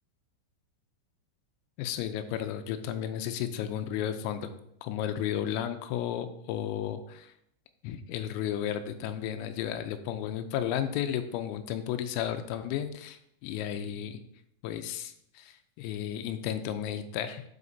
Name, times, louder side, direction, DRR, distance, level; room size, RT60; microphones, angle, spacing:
voice 1, 1.8-4.5 4.8-7.3 7.8-14.2 14.6-17.4, left 10 dB, 90° left, 8 dB, 3.3 m, -33 dB
9.5 x 5.0 x 2.6 m, 0.74 s
omnidirectional pair, 5.9 m